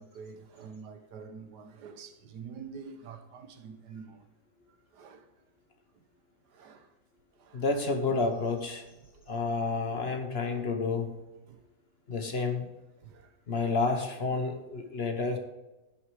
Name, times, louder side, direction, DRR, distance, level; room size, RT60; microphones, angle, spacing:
voice 1, 0.0-4.2 4.7-5.2 6.5-6.9 7.4-7.6 11.5-11.6 13.0-13.3 13.6-13.7 15.0-15.1, right 6 dB, 90° right, 1.6 m, -47 dB
voice 2, 7.5-8.8 9.3-11.2 12.1-12.7 13.5-15.4, left 3 dB, 45° left, 1.1 m, -30 dB
10.5 x 6.4 x 4.8 m
omnidirectional pair, 1.8 m